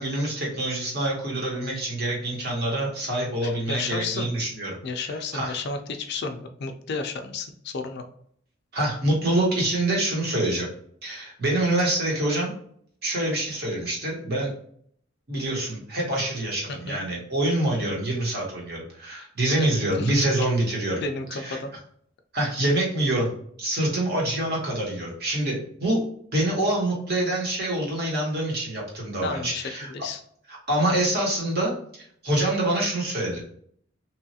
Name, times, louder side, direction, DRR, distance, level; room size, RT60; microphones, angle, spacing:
voice 1, 0.0-4.8 5.0-5.5 8.7-10.7 11.0-12.5 13.0-14.5 15.3-21.0 21.3-21.6 22.3-23.3 23.6-26.0 26.3-29.9 30.7-33.4, right 1 dB, 50° right, -3 dB, 1.1 m, -26 dB
voice 2, 3.4-4.4 4.8-8.0 16.7-17.0 19.6-19.7 20.0-20.1 21.0-21.7 29.2-30.2, left 4 dB, 55° left, 6 dB, 0.4 m, -32 dB
3.0 x 2.3 x 2.7 m, 0.64 s
head